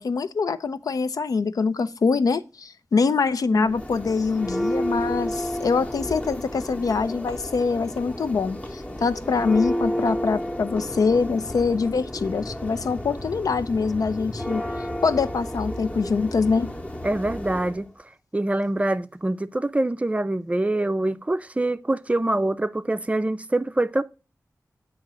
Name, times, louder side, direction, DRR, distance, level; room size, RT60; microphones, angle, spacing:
voice 1, 0.0-16.7, left 4 dB, 80° left, 0.4 m, -24 dB
Church bell, 3.6-17.8, equal, 20° left, 0.8 m, -31 dB
voice 2, 17.0-17.9 18.3-24.0, right 2 dB, 20° right, 0.4 m, -25 dB
8.3 x 2.9 x 6.0 m
wide cardioid pair, 75°, 6 cm